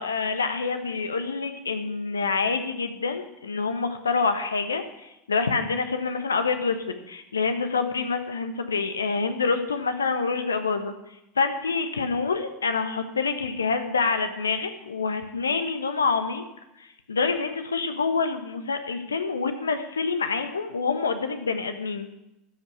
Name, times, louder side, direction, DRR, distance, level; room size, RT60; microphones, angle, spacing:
voice 1, 0.0-10.9 11.4-16.4 17.1-22.1, left 4 dB, 80° left, 8 dB, 1.1 m, -27 dB
13.0 x 5.6 x 9.4 m, 0.90 s
figure-of-eight pair, 75°, 0 cm